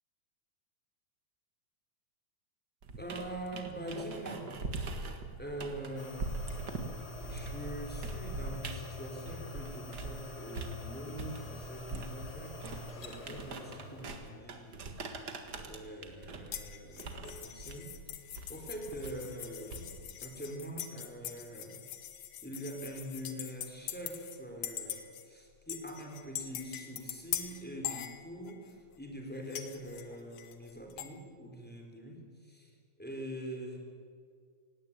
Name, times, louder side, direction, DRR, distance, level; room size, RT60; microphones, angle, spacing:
sound 1, 2.8-10.2 10.5-20.2, right 3 dB, 50° right, 1.2 m, -42 dB
voice 1, 3.0-4.5 5.4-6.4 7.2-15.0 15.3-17.9 18.5-19.9 20.2-21.8 22.4-33.8, equal, 5° left, 1 dB, 3.3 m, -44 dB
sound 2, 6.0-14.2, left 2 dB, 35° left, 1.7 m, -46 dB
sound 3, 16.5-24.4 24.6-25.3 25.7-28.7 29.5-31.1, left 11 dB, 60° left, 2.2 m, -42 dB
18.5 x 17.0 x 8.9 m, 2.2 s
omnidirectional pair, 4.3 m